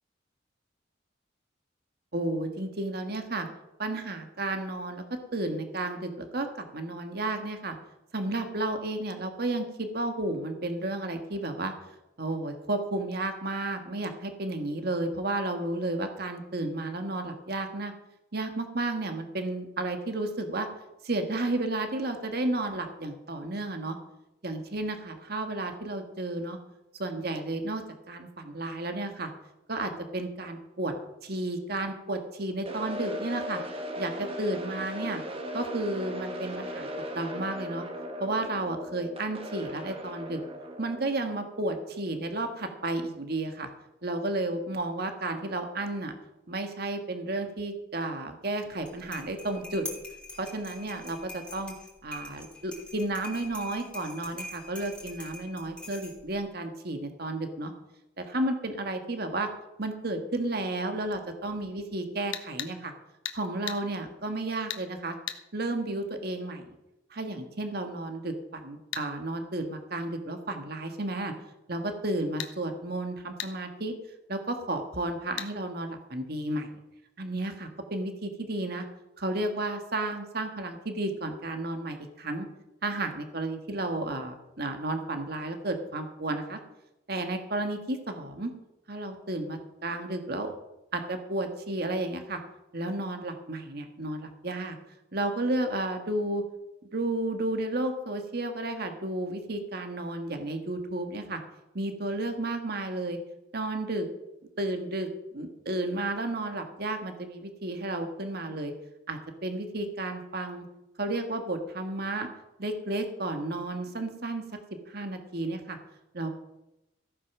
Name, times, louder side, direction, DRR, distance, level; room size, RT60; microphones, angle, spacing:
voice 1, 2.1-3.5 3.8-5.0 5.3-7.7 8.1-11.7 12.2-17.9 18.3-20.7 21.0-24.0 24.4-26.6 27.0-29.3 29.7-30.9 31.2-33.6 34.0-35.2 35.5-36.9 37.1-37.8 38.2-40.4 40.8-43.7 44.0-46.1 46.5-49.9 50.4-51.7 52.0-57.7 58.2-59.5 59.8-62.9 63.3-65.2 65.5-66.7 67.1-71.3 71.7-73.9 74.3-76.8 77.2-78.8 79.2-82.5 82.8-86.6 87.1-88.5 88.9-90.5 90.9-92.4 92.7-94.8 95.1-96.4 96.9-101.4 101.7-103.2 103.5-104.1 104.6-105.1 105.3-108.7 109.1-110.6 111.0-112.3 112.6-114.4 114.9-115.8 116.1-116.3, right 2 dB, 55° right, 6 dB, 1.6 m, -32 dB
sound 1, 32.7-42.7, equal, 30° right, 1.4 m, -38 dB
sound 2, 48.7-56.4, left 2 dB, 5° left, 3.3 m, -44 dB
sound 3, 62.3-62.7 63.3-63.4 63.7-63.8 64.7-64.8 65.3-65.4 68.9-69.1 72.4-72.5 73.4-73.5 75.4-75.5, left 10 dB, 80° left, 1.3 m, -35 dB
15.0 x 8.7 x 6.1 m, 0.92 s
head